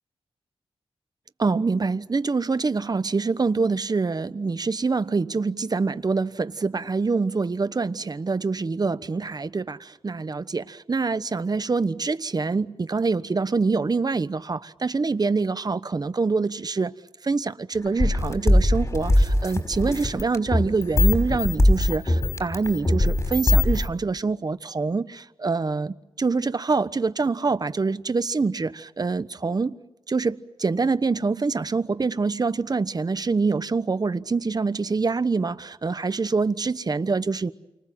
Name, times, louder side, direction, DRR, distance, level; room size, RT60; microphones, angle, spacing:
voice 1, 1.4-16.9 17.2-29.8 30.1-37.5, right 4 dB, 40° right, 1.1 m, -25 dB
sound 1, 17.8-23.9, left 1 dB, 30° left, 5.5 m, -21 dB
29.5 x 24.5 x 7.7 m
wide cardioid pair, 85°, 10 cm